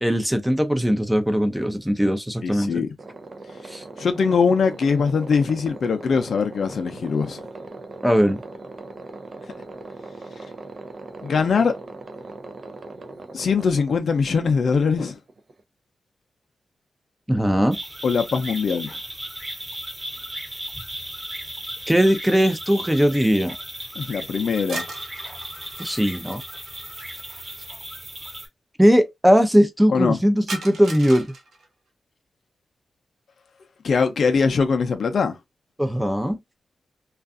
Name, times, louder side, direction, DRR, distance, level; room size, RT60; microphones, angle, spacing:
voice 1, 0.0-2.8 3.7-3.8 8.0-8.4 17.3-17.8 21.9-23.5 25.8-26.4 28.8-31.3 35.8-36.4, equal, 5° right, 0.6 m, -19 dB
voice 2, 2.4-2.9 4.0-7.4 11.2-11.7 13.3-15.2 18.0-18.9 24.0-24.8 29.9-30.2 33.8-35.4, left 5 dB, 70° left, 0.5 m, -21 dB
sound 1, 3.0-15.6, right 3 dB, 55° right, 0.5 m, -39 dB
sound 2, 17.7-28.5, right 1 dB, 20° right, 1.1 m, -36 dB
sound 3, 24.6-27.7 30.5-31.7, right 3 dB, 85° right, 0.7 m, -38 dB
2.5 x 2.3 x 2.4 m
cardioid pair, 80°, 0 cm